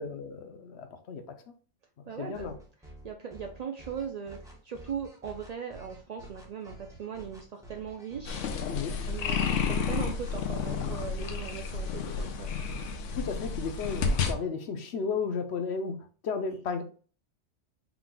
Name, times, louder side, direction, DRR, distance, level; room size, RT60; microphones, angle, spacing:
voice 1, 0.0-1.4 2.2-2.5 8.7-8.9 13.2-16.8, left 5 dB, 65° left, 7 dB, 0.9 m, -34 dB
voice 2, 2.1-2.5 3.0-8.4 9.1-12.5, right 7 dB, 70° right, 4 dB, 0.3 m, -39 dB
sound 1, 2.3-12.3, right 1 dB, 5° right, 0.9 m, -50 dB
sound 2, 8.2-14.3, left 5 dB, 80° left, 1.0 m, -31 dB
4.6 x 4.0 x 2.2 m, 0.40 s
omnidirectional pair, 1.3 m